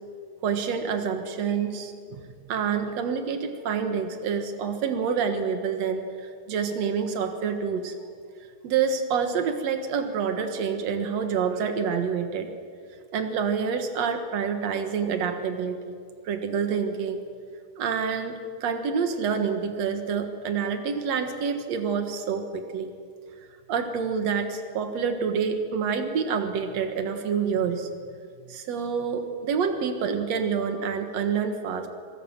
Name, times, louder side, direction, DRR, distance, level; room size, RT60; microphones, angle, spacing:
voice 1, 0.4-6.1 6.5-7.9 8.6-12.5 13.1-16.0 16.2-17.2 17.8-22.9 23.7-27.9 28.5-31.9, right 6 dB, 70° right, 7 dB, 1.6 m, -27 dB
26.5 x 18.5 x 7.4 m, 2.1 s
omnidirectional pair, 5.2 m